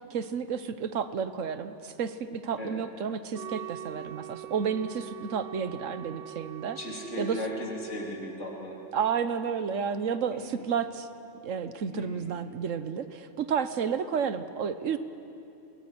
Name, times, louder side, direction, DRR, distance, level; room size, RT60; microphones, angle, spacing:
voice 1, 0.1-6.8 7.2-7.4 8.9-11.1 11.4-15.0, right 7 dB, 80° right, 11 dB, 1.3 m, -31 dB
Wind instrument woodwind instrument, 3.3-9.2, right 13 dB, 55° right, 0.9 m, -43 dB
voice 2, 6.8-8.8 10.3-10.6 11.9-12.4, left 1 dB, 70° left, -2 dB, 3.9 m, -37 dB
21.0 x 19.5 x 9.9 m, 2.7 s
omnidirectional pair, 1.3 m